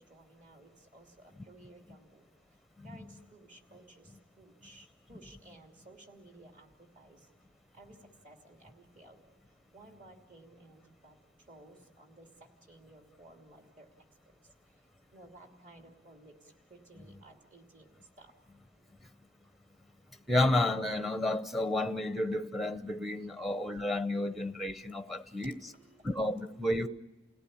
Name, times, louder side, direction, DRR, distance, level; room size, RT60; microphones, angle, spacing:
voice 1, 0.0-2.2 2.5-7.3 7.7-8.0 8.2-9.3 9.7-13.9 14.8-17.9 18.2-18.3 18.8-18.9 20.2-20.3 22.8-24.3 25.2-26.7, right 2 dB, 40° right, 3 dB, 3.0 m, -57 dB
voice 2, 20.3-25.5 26.0-26.9, left 1 dB, ahead, 10 dB, 0.7 m, -31 dB
30.0 x 17.5 x 8.7 m, 1.2 s
head